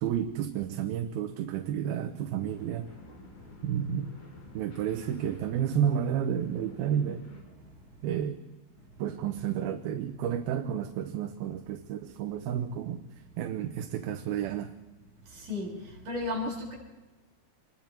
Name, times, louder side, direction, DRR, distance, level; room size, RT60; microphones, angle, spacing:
voice 1, 0.0-2.9 3.6-4.1 4.5-7.2 8.0-8.4 9.0-14.7, right 9 dB, 80° right, 7 dB, 2.8 m, -31 dB
sound 1, 2.4-7.4, left 2 dB, 90° left, 8.5 m, -51 dB
voice 2, 15.3-16.8, left 2 dB, 50° right, -3 dB, 7.8 m, -34 dB
27.0 x 21.5 x 4.5 m, 1.2 s
omnidirectional pair, 4.4 m